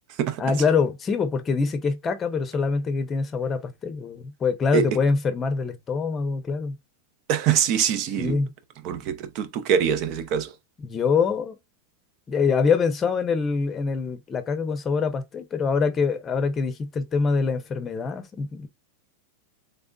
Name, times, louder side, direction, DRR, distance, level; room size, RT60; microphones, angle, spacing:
voice 1, 0.4-6.8 8.2-8.5 10.8-11.6 12.3-18.7, left 5 dB, 20° left, 0.8 m, -24 dB
voice 2, 7.3-8.4 8.8-10.5, right 8 dB, 50° right, 0.7 m, -24 dB
3.4 x 3.4 x 2.6 m
supercardioid pair, 130°, 0 cm